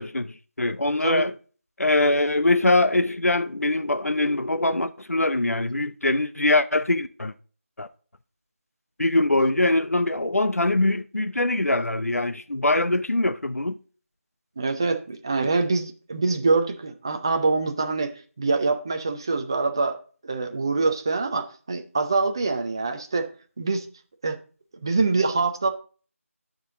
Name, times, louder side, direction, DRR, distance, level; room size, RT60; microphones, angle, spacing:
voice 1, 0.0-1.3 1.8-7.3 7.8-7.9 9.0-13.8, left 2 dB, 85° left, 0.7 m, -23 dB
voice 2, 14.6-20.0 20.2-23.3 23.6-23.9 24.2-24.4 24.7-25.7, right 3 dB, 20° right, 0.6 m, -25 dB
12.0 x 5.3 x 3.7 m
figure-of-eight pair, 170°, 8 cm